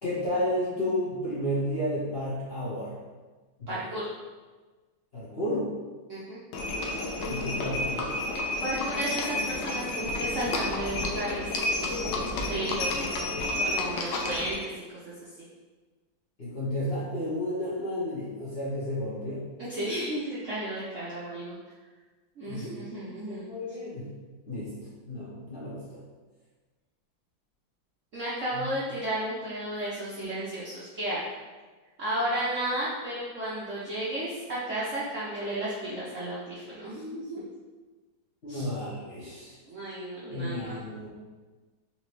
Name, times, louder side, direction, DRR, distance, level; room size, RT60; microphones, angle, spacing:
voice 1, 0.0-2.9 3.6-3.8 5.1-5.7 7.3-8.1 16.4-19.4 22.4-22.7 23.3-24.1 24.5-24.7 25.1-26.0 28.5-28.7 38.4-39.6 40.3-41.1, left 1 dB, 50° left, -10 dB, 0.7 m, -32 dB
voice 2, 3.7-4.1 6.1-6.4 8.4-11.5 12.5-13.2 13.5-14.7 15.0-15.4 19.6-21.5 22.4-23.5 28.1-31.3 32.0-37.4 38.5-38.7 39.6-40.8, right 1 dB, 60° right, -9 dB, 0.8 m, -33 dB
Livestock farm animals working animals, 6.5-14.6, left 2 dB, 75° left, 1.1 m, -30 dB
4.1 x 2.9 x 3.1 m, 1.3 s
omnidirectional pair, 2.2 m